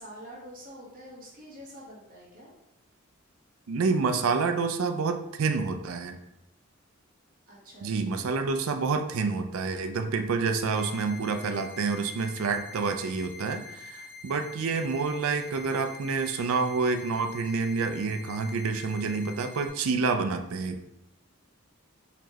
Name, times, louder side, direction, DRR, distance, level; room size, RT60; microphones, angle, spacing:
voice 1, 0.0-2.5 7.5-8.2, equal, 40° right, -4 dB, 1.1 m, -46 dB
voice 2, 3.7-6.2 7.8-20.9, right 4 dB, 70° right, 7 dB, 0.4 m, -28 dB
sound 1, 10.7-19.7, left 4 dB, 70° left, 1.2 m, -46 dB
4.2 x 3.0 x 2.8 m, 0.81 s
head